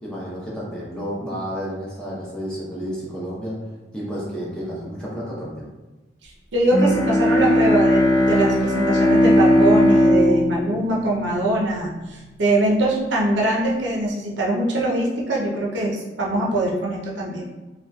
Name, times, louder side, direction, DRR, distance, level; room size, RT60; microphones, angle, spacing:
voice 1, 0.0-5.7, equal, 5° left, -7 dB, 0.6 m, -31 dB
voice 2, 6.2-17.5, right 1 dB, 75° right, -3 dB, 0.6 m, -22 dB
Bowed string instrument, 6.7-12.0, left 1 dB, 75° left, 0.5 m, -18 dB
2.9 x 2.3 x 2.2 m, 1.1 s
head